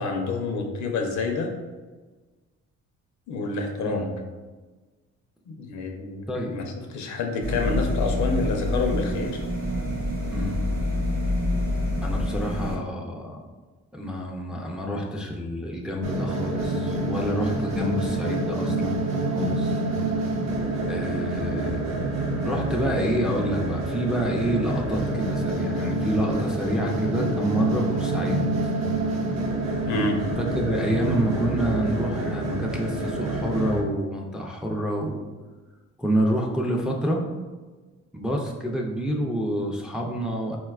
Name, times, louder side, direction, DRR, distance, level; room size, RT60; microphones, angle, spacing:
voice 1, 0.0-1.5 3.3-4.1 5.5-6.6 6.9-9.4 29.9-30.2, left 3 dB, 70° left, 3 dB, 0.6 m, -28 dB
sound 1, 7.4-12.7, left 1 dB, 30° right, 0.7 m, -27 dB
voice 2, 10.3-10.7 12.0-13.4 13.9-19.0 19.3-19.8 20.9-22.1 22.4-28.4 30.4-35.2 36.0-37.3 38.1-40.6, equal, ahead, 0 dB, 0.3 m, -28 dB
sound 2, 16.0-33.8, right 2 dB, 60° right, 0.6 m, -27 dB
4.1 x 2.2 x 2.3 m, 1.3 s
cardioid pair, 90°, 30 cm